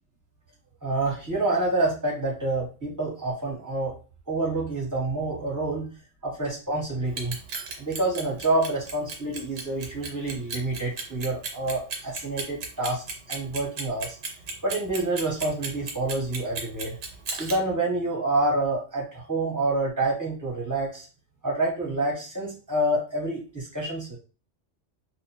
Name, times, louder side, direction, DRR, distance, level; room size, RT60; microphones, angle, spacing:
voice 1, 0.8-3.9 4.3-5.9 6.2-7.4 7.8-14.2 14.6-17.0 17.4-21.1 21.4-24.2, right 2 dB, 15° right, -5 dB, 1.1 m, -27 dB
Clock, 7.1-17.6, right 4 dB, 80° right, 1.1 m, -34 dB
2.5 x 2.1 x 2.9 m, 0.36 s
omnidirectional pair, 1.2 m